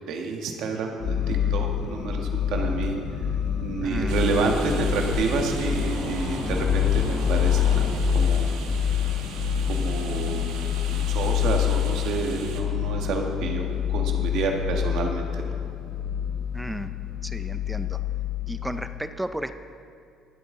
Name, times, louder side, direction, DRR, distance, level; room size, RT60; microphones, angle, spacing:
voice 1, 0.1-3.0 3.6-8.5 9.6-10.4 10.9-15.5, right 4 dB, 65° right, 2 dB, 1.4 m, -29 dB
sound 1, 1.0-18.9, left 9 dB, 55° left, 1.0 m, -26 dB
voice 2, 3.8-4.3 16.5-16.9 17.2-18.0 18.5-19.5, right 1 dB, 5° right, 10 dB, 0.4 m, -33 dB
sound 2, 4.1-12.6, right 5 dB, 90° right, 1.4 m, -40 dB
sound 3, 5.1-8.4, left 2 dB, 75° left, 2.1 m, -33 dB
21.0 x 7.9 x 3.8 m, 2.5 s
cardioid pair, 150°, 0 cm